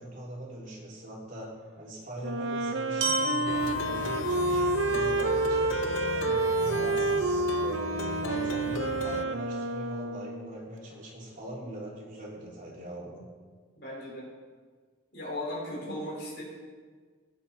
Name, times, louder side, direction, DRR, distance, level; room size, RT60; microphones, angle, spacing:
voice 1, 0.0-5.8 6.1-13.3, right 1 dB, 40° right, -4 dB, 3.2 m, -41 dB
Wind instrument woodwind instrument, 2.2-10.6, right 3 dB, 70° right, 0.8 m, -29 dB
Glockenspiel, 3.0-7.0, left 1 dB, 90° right, 1.9 m, -35 dB
Plucked string instrument, 3.5-9.2, left 3 dB, 80° left, 0.6 m, -36 dB
voice 2, 13.8-14.3 15.1-16.4, left 1 dB, 55° left, -4 dB, 4.6 m, -36 dB
16.5 x 9.5 x 4.3 m, 1.5 s
head